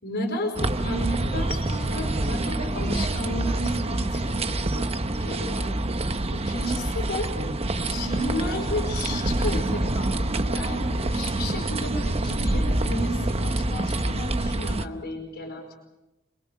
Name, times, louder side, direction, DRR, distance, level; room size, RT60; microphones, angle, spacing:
voice 1, 0.0-5.7 6.3-7.4 7.8-15.7, left 1 dB, 50° left, 2 dB, 4.8 m, -33 dB
sound 1, 0.6-14.9, right 2 dB, 30° right, 0.9 m, -26 dB
26.5 x 22.0 x 6.3 m, 0.98 s
head